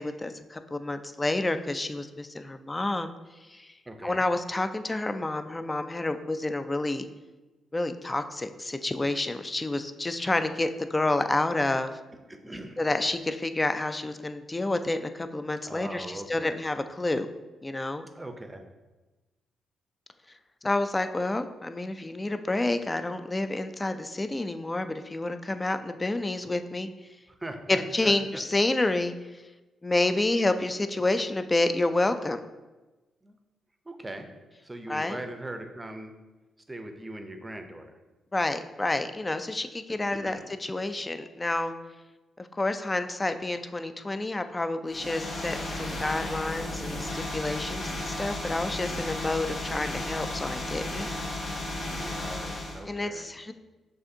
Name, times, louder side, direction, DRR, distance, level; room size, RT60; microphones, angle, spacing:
voice 1, 0.0-3.1 3.5-3.7 4.0-7.1 7.7-12.0 12.8-17.3 17.6-18.1 20.6-26.9 27.7-29.4 29.8-32.4 34.9-35.2 38.3-41.7 42.4-51.1 52.9-53.5, left 2 dB, 25° left, 9 dB, 0.3 m, -29 dB
voice 2, 3.9-4.2 12.3-12.8 15.6-16.6 18.2-18.6 27.3-28.4 33.2-33.4 33.9-34.3 34.6-36.1 36.7-37.9 40.1-40.4 51.9-53.3, right 1 dB, 20° right, 5 dB, 0.6 m, -40 dB
sound 1, 44.9-52.8, left 1 dB, 60° left, 0.8 m, -34 dB
6.3 x 2.5 x 2.7 m, 1.1 s
supercardioid pair, 50°, 0 cm